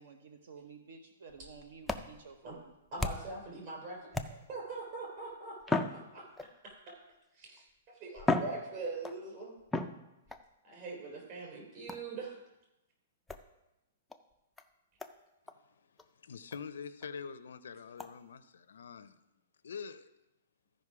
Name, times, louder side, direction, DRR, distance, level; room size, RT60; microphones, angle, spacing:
voice 1, 0.0-2.7, right 5 dB, 60° right, 6 dB, 0.9 m, -52 dB
sound 1, 1.3-3.5 4.1-4.7 5.6-6.7 7.6-7.7 8.2-9.2 9.7-10.4 11.9-12.2 13.3-13.5 14.1-14.2 14.6-14.7 15.0-15.2 15.5-15.6 16.0-16.1 16.5-16.6 17.0-17.1 18.0-18.1, left 2 dB, 5° left, 0.3 m, -36 dB
voice 2, 2.9-4.2 4.5-6.3 6.6-7.0 7.4-9.6 10.6-12.4, right 3 dB, 30° right, -1 dB, 3.4 m, -42 dB
voice 3, 15.5-19.2 19.6-20.1, left 6 dB, 80° left, 13 dB, 0.5 m, -45 dB
14.0 x 5.2 x 4.8 m, 0.94 s
hypercardioid pair, 170°, 0 cm